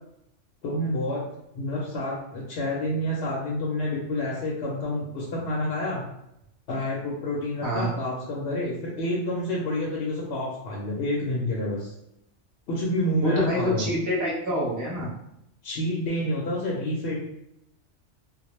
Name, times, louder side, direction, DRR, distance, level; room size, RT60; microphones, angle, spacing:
voice 1, 0.6-1.2 1.5-6.0 6.7-11.9 12.7-13.9 15.6-17.2, left 1 dB, 65° left, -4 dB, 0.8 m, -28 dB
voice 2, 13.2-15.1, equal, 20° right, -5 dB, 0.6 m, -26 dB
2.1 x 2.1 x 3.0 m, 0.80 s
omnidirectional pair, 1.2 m